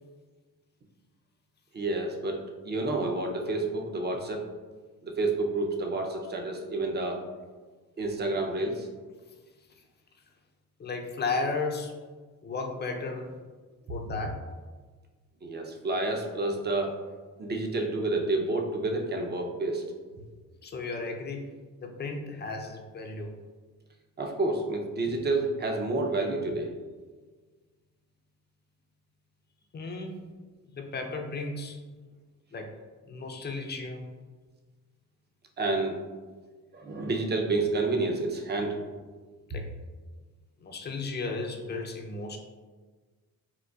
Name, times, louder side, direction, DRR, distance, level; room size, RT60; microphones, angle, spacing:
voice 1, 1.7-4.4 5.0-7.2 8.0-8.9 15.4-17.0 17.4-19.9 24.2-26.7 35.6-36.0 36.7-38.8, right 2 dB, 30° right, 2 dB, 0.5 m, -29 dB
voice 2, 10.8-11.9 12.4-13.3 13.9-14.4 20.6-21.5 21.8-23.3 29.7-30.1 30.7-31.8 32.5-32.7 33.1-34.1 39.5-39.7 40.6-42.4, left 3 dB, 30° left, 3 dB, 0.5 m, -34 dB
3.8 x 2.4 x 2.3 m, 1.4 s
supercardioid pair, 65°, 37 cm